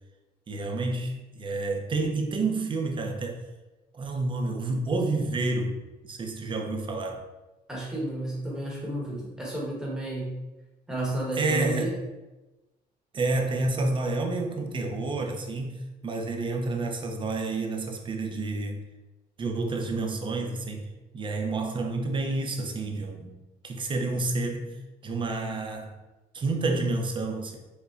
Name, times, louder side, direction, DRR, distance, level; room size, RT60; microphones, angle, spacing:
voice 1, 0.5-3.4 3.9-5.8 6.0-7.2 11.4-11.9 13.1-18.8 19.4-20.9 21.1-23.3 23.6-24.8 25.0-25.9 26.3-27.6, right 3 dB, 30° right, 2 dB, 0.5 m, -29 dB
voice 2, 7.7-10.4 10.9-11.9, right 1 dB, 5° right, -4 dB, 1.1 m, -32 dB
4.8 x 2.2 x 2.4 m, 1.1 s
cardioid pair, 110°, 17 cm